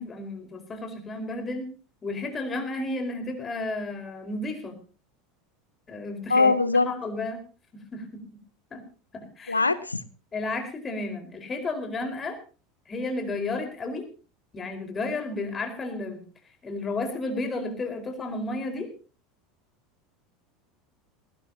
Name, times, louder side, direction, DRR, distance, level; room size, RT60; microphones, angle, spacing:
voice 1, 0.0-1.7 2.0-4.8 5.9-7.4 7.9-8.2 8.7-8.8 9.1-9.7 10.3-12.4 12.9-14.1 14.5-16.2 16.6-18.9, left 2 dB, 25° left, 4.7 m, -32 dB
voice 2, 6.3-6.9 9.5-10.0, left 3 dB, 85° left, 1.0 m, -21 dB
19.5 x 17.5 x 2.9 m
figure-of-eight pair, 75°, 0 cm